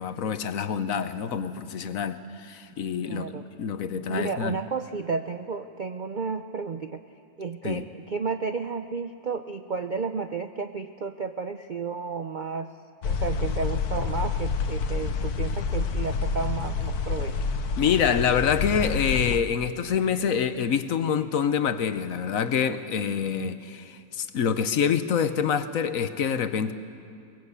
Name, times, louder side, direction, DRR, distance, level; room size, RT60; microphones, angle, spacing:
voice 1, 0.0-4.6 7.6-7.8 17.8-26.7, left 7 dB, 65° left, 11 dB, 1.2 m, -26 dB
voice 2, 3.0-3.4 4.1-7.0 7.4-12.7 13.0-17.4, right 5 dB, 55° right, 8 dB, 0.5 m, -32 dB
sound 1, 13.0-19.4, left 5 dB, 85° left, 1.5 m, -28 dB
22.5 x 19.0 x 8.2 m, 2.5 s
omnidirectional pair, 1.6 m